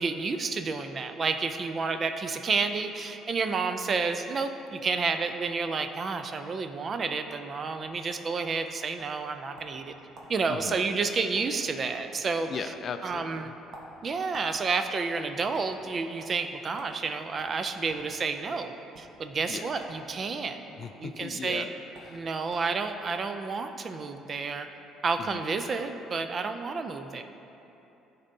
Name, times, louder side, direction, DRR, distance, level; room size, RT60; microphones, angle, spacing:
voice 1, 0.0-9.9 10.3-12.7 13.0-13.5 14.0-20.6 21.0-21.7 22.1-24.7 25.0-27.2, right 4 dB, 35° right, 8 dB, 0.4 m, -30 dB
sound 1, 9.0-9.8 10.1-10.3 10.7-10.9 11.2-11.7 11.9-12.2 12.5-12.7 13.1-14.5 14.8-15.7 16.2-16.3 16.8-16.9 17.4-18.1 18.8-19.0 19.7-20.0 20.3-20.9 21.6-21.7 21.9-22.1 22.5-22.8, right 2 dB, 60° right, 1.0 m, -48 dB
voice 2, 12.5-13.5 19.5-19.7 20.8-21.7 22.0-22.3 25.2-25.4, left 6 dB, 45° left, 8 dB, 0.3 m, -38 dB
12.0 x 4.0 x 2.7 m, 3.0 s
cardioid pair, 110°, 0 cm